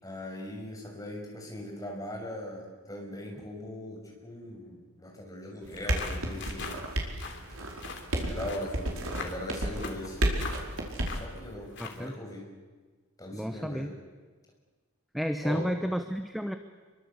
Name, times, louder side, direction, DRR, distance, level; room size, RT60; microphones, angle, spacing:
voice 1, 0.0-6.7 7.5-7.8 8.2-10.3 11.1-12.4 13.2-13.9 15.4-15.7, left 1 dB, 15° left, -1 dB, 6.5 m, -40 dB
sound 1, 5.6-11.2, right 1 dB, 75° right, 4.8 m, -32 dB
sound 2, 5.7-12.1, left 4 dB, 55° left, 3.1 m, -43 dB
voice 2, 11.8-12.2 13.3-14.0 15.1-16.5, equal, ahead, 7 dB, 0.9 m, -32 dB
27.5 x 23.5 x 8.3 m, 1.4 s
head